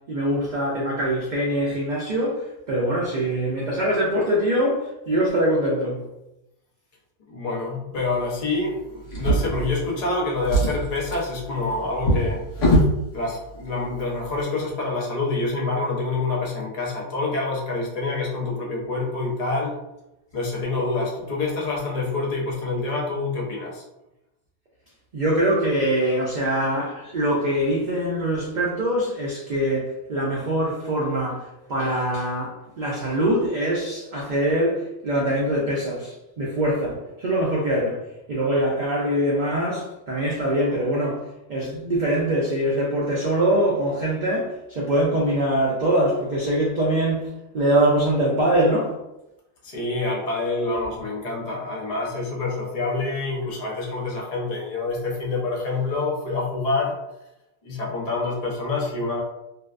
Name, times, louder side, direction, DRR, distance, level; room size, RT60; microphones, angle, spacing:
voice 1, 0.1-2.4 2.7-6.0 25.1-31.4 31.7-38.0 38.3-41.2 41.5-47.3 47.5-48.9, right 1 dB, 60° right, -4 dB, 0.5 m, -23 dB
voice 2, 7.3-12.4 13.1-19.8 20.3-23.8 49.6-56.9 57.6-59.2, left 3 dB, 40° left, -3 dB, 0.6 m, -27 dB
Drawer open or close, 9.1-10.1 10.4-13.0 13.9-14.0 14.4-14.5, right 1 dB, 70° left, 1.2 m, -23 dB
2.6 x 2.1 x 2.3 m, 0.90 s
omnidirectional pair, 1.3 m